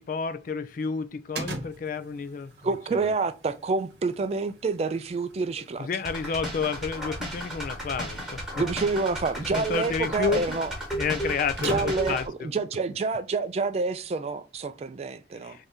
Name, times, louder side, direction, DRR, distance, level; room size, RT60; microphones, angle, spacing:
voice 1, 0.0-2.5 2.9-3.0 5.8-8.6 9.4-10.6 10.9-12.5 15.4-15.7, left 5 dB, 50° left, 0.3 m, -30 dB
sound 1, 1.3-12.2, right 2 dB, 60° right, 0.9 m, -44 dB
voice 2, 2.6-5.9 8.6-10.7 11.6-15.7, right 4 dB, 35° right, 0.3 m, -28 dB
sound 2, 6.0-12.3, right 1 dB, 5° right, 1.0 m, -34 dB
3.5 x 2.7 x 3.4 m
head